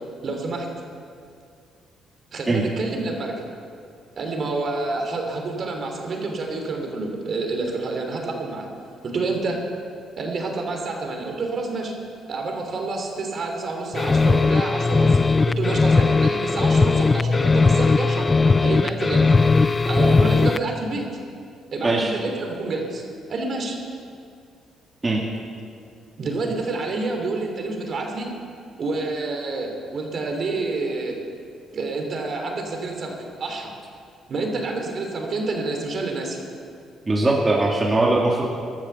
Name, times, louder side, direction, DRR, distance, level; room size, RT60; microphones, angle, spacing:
voice 1, 0.2-0.7 2.3-3.4 4.2-8.7 9.0-9.6 10.2-11.9 12.3-15.2 15.4-18.3 18.6-19.3 19.8-21.1 21.7-23.0 23.3-23.8 26.2-28.3 28.8-31.2 31.7-33.7 34.3-36.4, right 3 dB, 50° right, 2 dB, 3.2 m, -28 dB
sound 1, 13.9-20.7, left 4 dB, 30° left, 0.4 m, -18 dB
voice 2, 37.1-38.5, right 2 dB, 25° right, -2 dB, 2.2 m, -20 dB
15.0 x 12.0 x 7.1 m, 2.4 s
cardioid pair, 80°, 0 cm